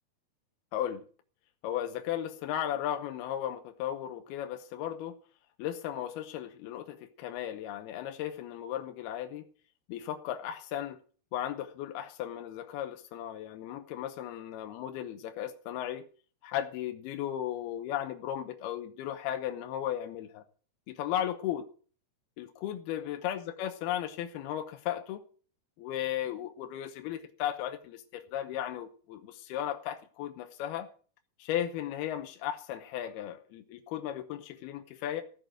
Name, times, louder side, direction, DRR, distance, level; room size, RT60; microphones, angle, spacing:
voice 1, 0.7-1.0 1.6-5.1 5.6-9.5 9.9-11.0 11.3-16.1 16.4-20.4 20.9-21.7 22.4-25.2 25.8-30.9 31.4-35.2, left 11 dB, 85° left, 2.9 m, -35 dB
15.0 x 6.6 x 7.6 m
omnidirectional pair, 4.5 m